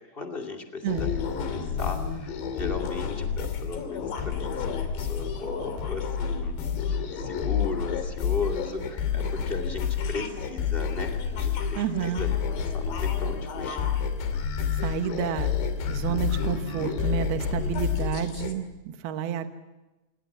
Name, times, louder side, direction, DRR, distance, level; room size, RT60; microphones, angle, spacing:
voice 1, 0.0-6.5 6.8-13.8 17.5-18.2, left 4 dB, 25° left, 2 dB, 1.1 m, -37 dB
sound 1, 0.9-18.5, left 7 dB, 65° left, 4.8 m, -29 dB
voice 2, 11.8-12.2 14.8-15.5 15.9-19.5, right 8 dB, 65° right, 7 dB, 2.8 m, -30 dB
27.5 x 22.5 x 7.4 m, 1.1 s
omnidirectional pair, 5.5 m